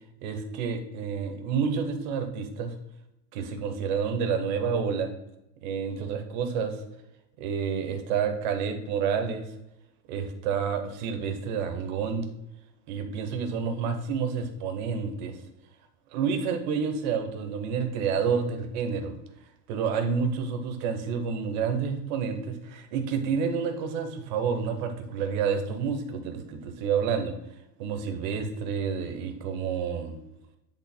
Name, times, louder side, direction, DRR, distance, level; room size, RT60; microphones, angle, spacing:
voice 1, 0.2-2.7 3.3-5.1 5.6-6.8 7.4-9.5 10.1-12.3 12.9-15.4 16.1-19.1 19.7-27.3 27.8-30.2, right 6 dB, 30° right, 6 dB, 0.6 m, -29 dB
8.1 x 3.4 x 4.1 m, 0.87 s
supercardioid pair, 170°, 49 cm